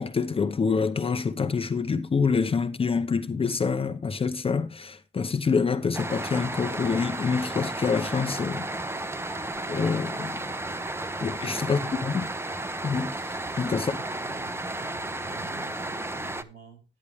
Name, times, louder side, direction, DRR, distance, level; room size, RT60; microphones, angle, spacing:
voice 1, 0.0-8.7 9.7-10.4 11.2-12.3 12.8-14.0, left 5 dB, 30° left, 0.7 m, -26 dB
sound 1, 5.9-16.4, right 2 dB, 10° right, 0.6 m, -33 dB
voice 2, 11.6-12.3 13.7-16.8, right 4 dB, 55° right, 3.7 m, -49 dB
9.8 x 9.4 x 3.4 m
cardioid pair, 90°, 20 cm